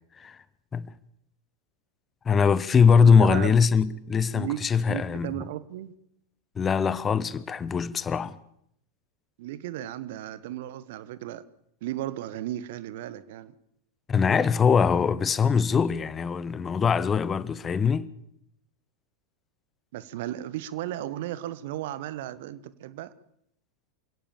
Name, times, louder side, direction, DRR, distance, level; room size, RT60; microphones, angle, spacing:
voice 1, 2.2-5.3 6.6-8.4 14.1-18.1, left 6 dB, 20° left, 1.0 m, -22 dB
voice 2, 2.9-3.5 4.3-5.9 9.4-11.4 11.8-13.5 19.9-23.1, right 13 dB, 50° right, 1.3 m, -35 dB
27.5 x 17.5 x 7.2 m
figure-of-eight pair, 90°, 0 cm